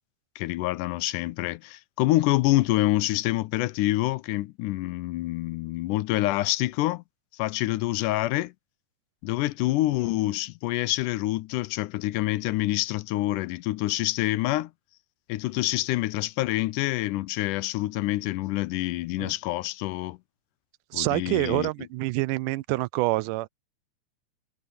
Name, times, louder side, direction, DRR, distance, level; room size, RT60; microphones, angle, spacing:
voice 1, 0.4-7.0 7.3-8.5 9.2-14.7 15.3-20.2 20.9-21.7, left 17 dB, 85° left, 2.2 m, -26 dB
voice 2, 20.9-23.5, right 20 dB, 85° right, 2.1 m, -27 dB
omnidirectional pair, 3.6 m